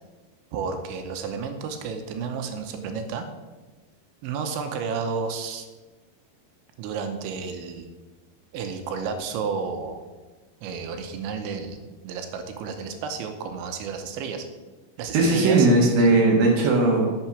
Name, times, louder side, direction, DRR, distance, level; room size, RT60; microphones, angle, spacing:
voice 1, 0.5-3.3 4.2-5.7 6.8-7.9 8.5-10.0 10.6-11.8 12.0-14.5 15.0-16.1, right 5 dB, 90° right, 7 dB, 3.2 m, -31 dB
voice 2, 15.1-17.1, right 2 dB, 60° right, -1 dB, 3.0 m, -18 dB
9.0 x 6.8 x 6.0 m, 1.2 s
omnidirectional pair, 5.2 m